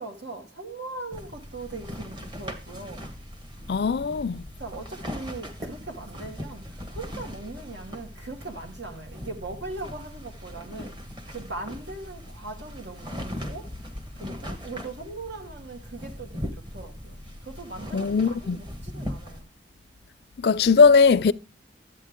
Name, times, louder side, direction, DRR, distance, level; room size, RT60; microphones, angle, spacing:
voice 1, 0.0-3.1 4.6-11.0 11.3-13.7 14.2-19.5, right 3 dB, 75° right, 2.1 m, -40 dB
sound 1, 1.1-19.4, equal, 25° right, 1.3 m, -39 dB
voice 2, 3.7-4.4 17.9-18.6 20.4-21.3, left 5 dB, 60° left, 0.4 m, -19 dB
12.0 x 8.7 x 3.7 m
head